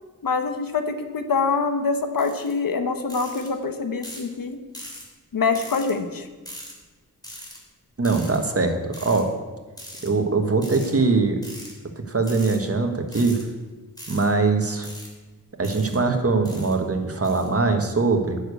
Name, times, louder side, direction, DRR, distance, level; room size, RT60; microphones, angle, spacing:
voice 1, 0.2-4.6 5.3-6.3, left 4 dB, 90° left, 7 dB, 1.1 m, -25 dB
sound 1, 2.2-2.5 3.1-3.5 4.0-4.3 4.7-5.0 5.5-5.9 6.5-6.7 7.2-7.6 8.0-8.4 8.9-9.2 9.8-10.1 10.6-10.9 11.4-11.7 12.2-12.6 13.1-13.4 14.0-14.3 14.8-15.1 15.6-16.0 16.5-16.7 17.2-17.5, equal, 10° left, 3.1 m, -40 dB
voice 2, 8.0-9.3 10.0-11.4 12.1-13.4 14.1-14.9 15.6-18.4, right 3 dB, 45° right, 5 dB, 1.4 m, -22 dB
9.9 x 6.7 x 8.3 m, 1.3 s
wide cardioid pair, 95°, 33 cm